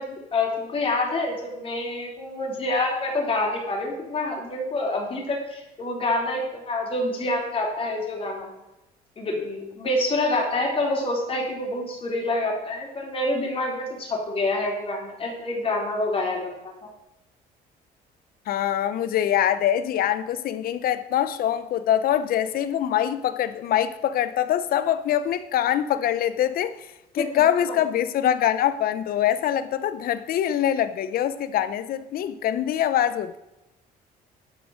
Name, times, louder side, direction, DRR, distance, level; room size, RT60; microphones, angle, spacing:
voice 1, 0.0-8.5 9.2-16.7 27.2-27.4 27.7-27.8, left 2 dB, 35° left, 3.7 m, -27 dB
voice 2, 18.5-26.9 27.1-33.4, left 10 dB, 65° left, 0.8 m, -24 dB
10.5 x 6.4 x 6.3 m
cardioid pair, 120°, 17 cm